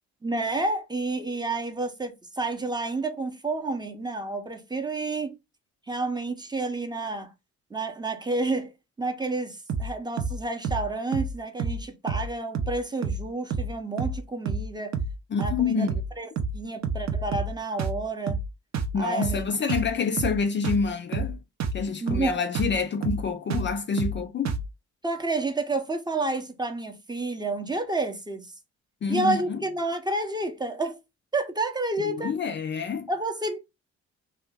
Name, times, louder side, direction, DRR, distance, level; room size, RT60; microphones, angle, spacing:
voice 1, 0.2-5.4 5.9-7.3 7.7-15.0 15.4-15.9 16.2-18.4 18.9-19.5 22.0-22.4 25.0-28.5 29.1-31.0 31.3-32.3 33.1-33.6, right 2 dB, 15° right, 0.6 m, -30 dB
sound 1, 9.7-9.9 10.2-10.4 10.6-10.9 11.1-11.3 11.6-11.8 12.1-12.3 12.5-12.8 13.0-13.2 13.5-13.7 14.0-14.2 14.5-14.7 14.9-15.2 15.4-15.6 15.9-16.1 16.4-16.6 16.8-17.5 17.8-18.0 18.3-18.5 18.7-19.0 19.2-19.4 19.7-19.9 20.2-20.4 20.6-20.9 21.1-21.3 21.6-21.8 22.1-22.3 22.6-22.8 23.0-23.2 23.5-23.7 24.0-24.2 24.5-24.7, right 4 dB, 65° right, 0.7 m, -29 dB
voice 2, 15.3-16.0 18.9-21.4 21.7-24.6 29.0-29.6 32.1-33.1, left 5 dB, 40° left, 0.4 m, -27 dB
2.8 x 2.2 x 3.4 m
cardioid pair, 90°, 30 cm